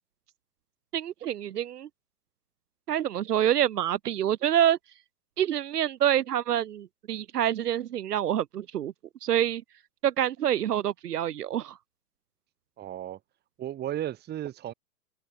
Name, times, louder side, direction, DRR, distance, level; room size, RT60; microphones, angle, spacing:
voice 1, 0.9-1.9 2.9-4.8 5.4-8.9 9.2-9.6 10.0-11.7, right 11 dB, 80° right, 0.8 m, -26 dB
voice 2, 12.8-13.2 13.6-14.7, right 12 dB, 20° right, 1.8 m, -34 dB
hypercardioid pair, 115°, 46 cm